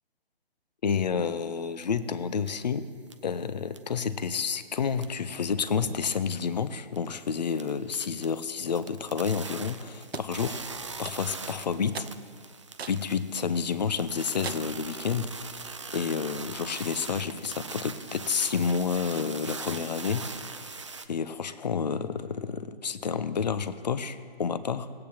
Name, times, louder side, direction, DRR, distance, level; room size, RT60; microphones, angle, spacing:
voice 1, 0.8-2.9 3.2-10.6 11.0-12.1 12.9-15.3 15.9-20.8 21.1-24.9, left 6 dB, 45° left, 13 dB, 0.6 m, -30 dB
sound 1, 1.8-1.9 2.5-2.6 3.1-3.4 3.7-4.0 4.3-5.2 5.5-6.6 6.9-7.0 7.4-21.1, right 4 dB, 30° right, 0.4 m, -41 dB
sound 2, 10.1-10.3 11.1-11.5 11.9-12.2 12.8-13.1 13.6-13.7 14.4-14.8, right 6 dB, 80° right, 0.6 m, -39 dB
19.5 x 8.6 x 2.8 m, 2.2 s
figure-of-eight pair, 150°, 31 cm